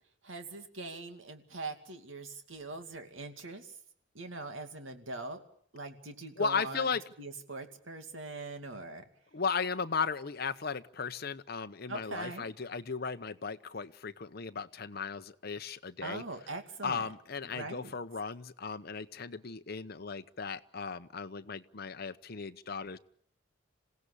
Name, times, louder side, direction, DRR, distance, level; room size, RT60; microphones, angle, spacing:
voice 1, 0.2-3.7 4.1-5.4 5.7-6.9 7.2-9.0 11.9-12.5 16.0-17.1 17.5-17.9, right 3 dB, 85° right, 7 dB, 2.5 m, -42 dB
voice 2, 6.4-7.0 9.3-16.2 16.8-23.0, left 5 dB, 55° left, 10 dB, 0.9 m, -36 dB
27.0 x 17.0 x 8.4 m, 0.66 s
head